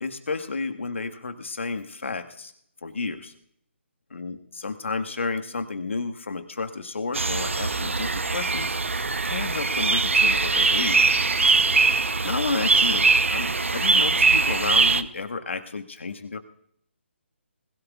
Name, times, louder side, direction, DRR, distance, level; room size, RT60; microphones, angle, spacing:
voice 1, 0.0-2.5 2.8-3.3 4.1-8.8 9.2-11.0 12.2-16.4, left 4 dB, 70° left, 5 dB, 1.7 m, -31 dB
sound 1, 7.1-15.0, right 4 dB, 80° right, 0.8 m, -22 dB
20.5 x 16.5 x 2.4 m, 0.67 s
figure-of-eight pair, 145°, 7 cm